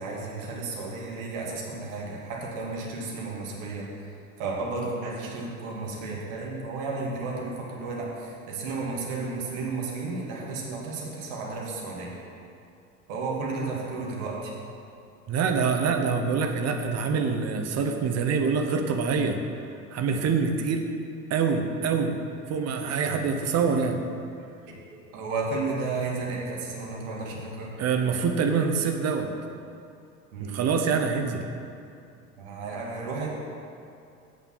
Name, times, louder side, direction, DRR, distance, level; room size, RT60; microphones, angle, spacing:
voice 1, 0.0-3.9 4.4-12.2 13.1-14.5 23.0-23.2 24.7-24.8 25.1-27.7 30.3-30.6 32.4-33.3, right 3 dB, 60° right, -3 dB, 2.1 m, -33 dB
voice 2, 15.3-19.4 19.9-20.9 21.3-22.1 22.5-24.0 27.8-29.3 30.4-31.4, right 5 dB, 35° right, 5 dB, 1.0 m, -25 dB
8.9 x 6.8 x 6.0 m, 2.5 s
figure-of-eight pair, 65°, 45 cm